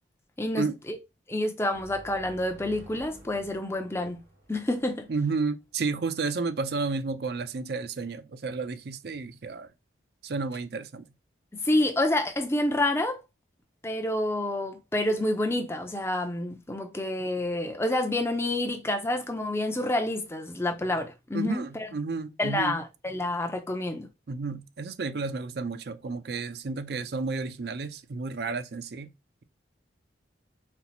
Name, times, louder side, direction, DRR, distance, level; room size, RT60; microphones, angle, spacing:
voice 1, 0.4-1.0 1.3-4.2 4.5-5.1 11.6-13.2 13.8-21.9 22.4-24.1, left 1 dB, 15° left, 0.5 m, -28 dB
sound 1, 1.7-5.4, right 1 dB, 85° right, 1.6 m, -51 dB
voice 2, 5.1-9.7 10.2-11.0 21.3-22.7 24.3-29.1, right 4 dB, 55° right, 0.4 m, -31 dB
4.3 x 2.0 x 4.0 m
head